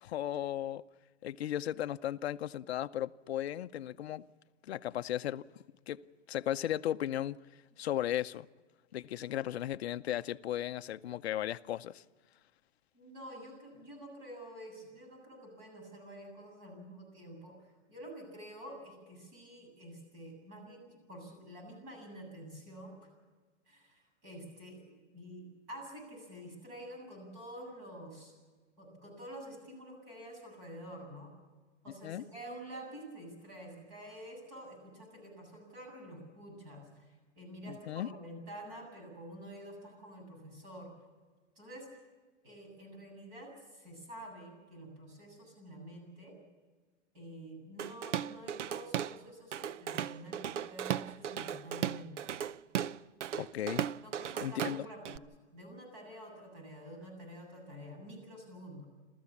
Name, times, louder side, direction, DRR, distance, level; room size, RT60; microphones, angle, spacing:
voice 1, 0.0-0.8 1.2-4.2 4.7-5.4 5.9-6.0 6.3-7.4 7.8-8.5 8.9-12.0 32.0-32.2 37.7-38.1 53.4-53.9 54.4-54.9, left 12 dB, 60° left, 0.7 m, -35 dB
voice 2, 12.9-23.0 23.7-28.3 28.8-31.3 31.8-40.9 41.6-41.9 42.4-46.4 47.1-52.3 54.0-58.9, right 1 dB, 30° right, 7.8 m, -49 dB
Drum kit / Drum, 47.8-49.2 49.5-55.2, right 10 dB, 75° right, 0.7 m, -36 dB
28.0 x 14.5 x 7.2 m
hypercardioid pair, 170°, 36 cm